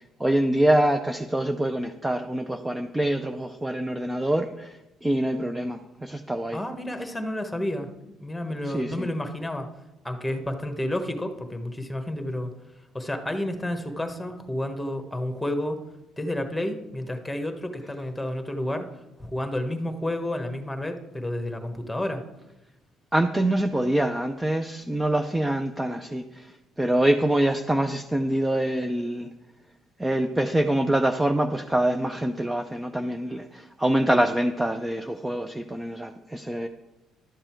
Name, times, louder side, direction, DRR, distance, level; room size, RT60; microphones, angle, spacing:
voice 1, 0.2-4.8 5.0-6.6 8.7-9.1 23.1-26.5 26.8-29.3 30.0-36.7, right 1 dB, 10° right, 6 dB, 0.5 m, -25 dB
voice 2, 6.5-7.9 8.2-9.7 10.0-12.5 12.9-15.8 16.2-18.9 19.2-22.2, left 1 dB, 5° left, 6 dB, 1.2 m, -30 dB
11.5 x 6.7 x 4.5 m, 0.98 s
cardioid pair, 105°, 0 cm